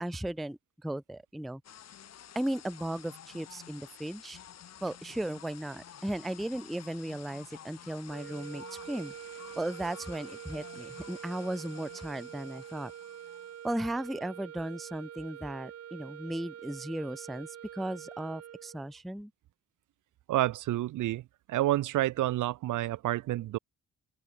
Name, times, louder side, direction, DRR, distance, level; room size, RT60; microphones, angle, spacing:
voice 1, 0.0-1.6 2.4-4.4 4.8-9.1 9.6-12.9 13.6-19.3, right 1 dB, ahead, 0.4 m, -36 dB
sound 1, 1.6-13.7, left 9 dB, 60° left, 2.7 m, -51 dB
sound 2, 8.1-18.9, right 10 dB, 55° right, 1.3 m, -46 dB
voice 2, 20.3-23.6, right 15 dB, 80° right, 1.6 m, -29 dB
open air
cardioid pair, 90°, 30 cm